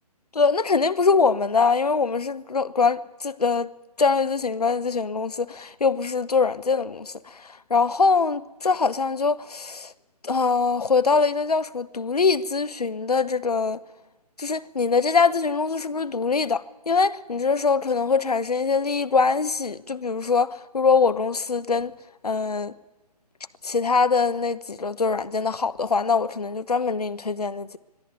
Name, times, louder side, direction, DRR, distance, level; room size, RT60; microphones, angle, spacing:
voice 1, 0.3-3.7 4.0-9.9 10.2-13.8 14.4-21.9 22.2-22.8 23.6-27.7, left 4 dB, 70° left, 1.0 m, -23 dB
22.5 x 13.5 x 9.6 m
figure-of-eight pair, 140°, 21 cm